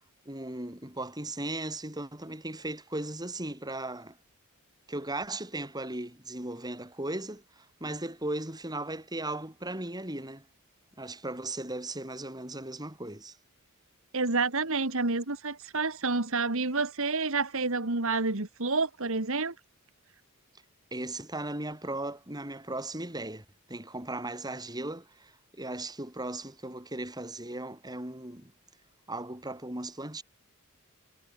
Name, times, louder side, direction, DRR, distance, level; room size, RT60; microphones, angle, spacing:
voice 1, 0.3-4.2 4.9-10.5 11.0-13.4 20.9-28.5 29.1-30.2, right 2 dB, 20° right, 6.2 m, -37 dB
voice 2, 14.1-19.5, right 3 dB, 65° right, 2.2 m, -29 dB
head